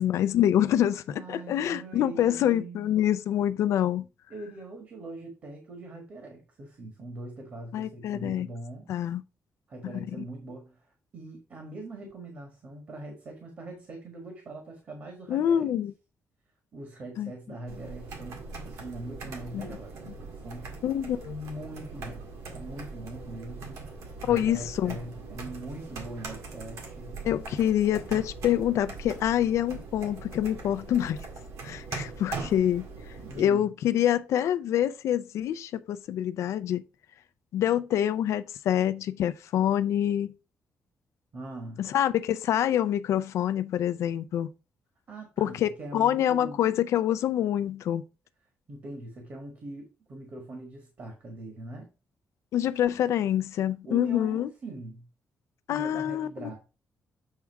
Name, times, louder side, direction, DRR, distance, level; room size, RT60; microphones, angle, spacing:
voice 1, 0.0-4.1 7.7-8.5 8.9-9.2 9.8-10.2 15.3-15.9 17.2-17.3 19.5-19.7 20.8-21.3 24.3-25.0 27.2-31.2 31.6-32.9 33.4-36.8 37.5-40.3 41.8-44.5 45.4-48.0 52.5-54.5 55.7-56.6, left 11 dB, 80° left, 0.5 m, -26 dB
voice 2, 1.1-2.9 4.3-8.9 9.7-10.9 11.1-15.7 16.7-20.7 21.2-22.3 22.5-27.2 33.2-33.7 41.3-41.8 45.1-46.6 48.7-51.9 53.8-55.0 55.7-56.6, right 2 dB, 40° right, 1.6 m, -42 dB
sound 1, 17.7-33.4, right 4 dB, 90° right, 1.9 m, -41 dB
7.5 x 3.5 x 4.6 m
wide cardioid pair, 180°, 5 cm